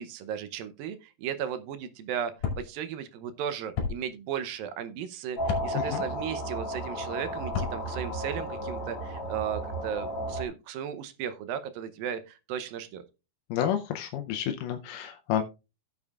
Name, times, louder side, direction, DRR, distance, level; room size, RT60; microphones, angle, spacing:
voice 1, 0.0-13.0, right 8 dB, 75° right, 2.4 m, -35 dB
sound 1, 2.4-2.6 3.8-3.9 5.4-5.7 7.4-7.7, left 6 dB, 60° left, 3.9 m, -30 dB
sound 2, 5.4-10.4, right 1 dB, 40° left, 3.3 m, -34 dB
voice 2, 13.5-15.4, left 10 dB, 75° left, 2.0 m, -30 dB
16.0 x 7.0 x 2.4 m
omnidirectional pair, 4.3 m